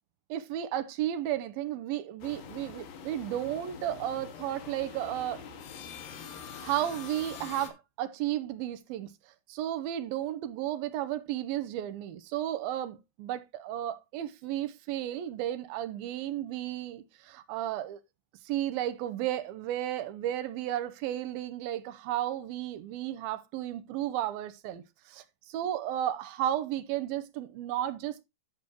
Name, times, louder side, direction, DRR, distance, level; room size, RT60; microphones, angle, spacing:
voice 1, 0.3-5.4 6.6-9.1 9.5-18.0 18.5-28.2, right 12 dB, 80° right, 2.6 m, -33 dB
sound 1, 2.2-7.7, left 7 dB, 70° left, 3.2 m, -45 dB
10.5 x 7.8 x 2.9 m
omnidirectional pair, 4.4 m